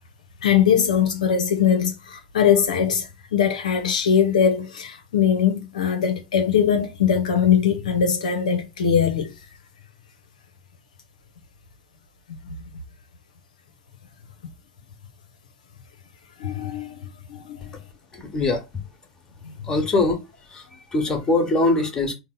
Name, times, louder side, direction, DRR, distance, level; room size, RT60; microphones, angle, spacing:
voice 1, 0.4-3.1 3.3-9.3 12.5-12.6 16.4-16.9 17.3-17.6, left 8 dB, 75° left, 0.6 m, -21 dB
voice 2, 18.1-18.8 19.6-20.2 20.5-22.1, left 2 dB, 20° left, 1.3 m, -22 dB
3.8 x 2.0 x 3.9 m
hypercardioid pair, 95°, 4 cm